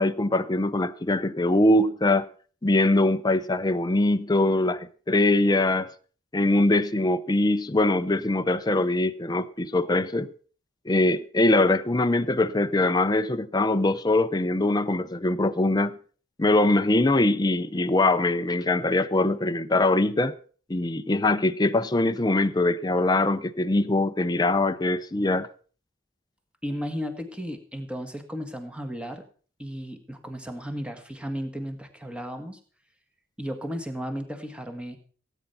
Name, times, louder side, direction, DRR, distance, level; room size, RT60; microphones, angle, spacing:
voice 1, 0.0-2.3 2.6-5.9 6.3-10.3 10.9-16.0 16.4-20.4 20.7-25.5, left 2 dB, 20° left, 0.6 m, -22 dB
voice 2, 26.6-29.2 29.6-32.6 33.4-35.0, equal, 5° right, 1.6 m, -34 dB
17.0 x 9.1 x 5.6 m
head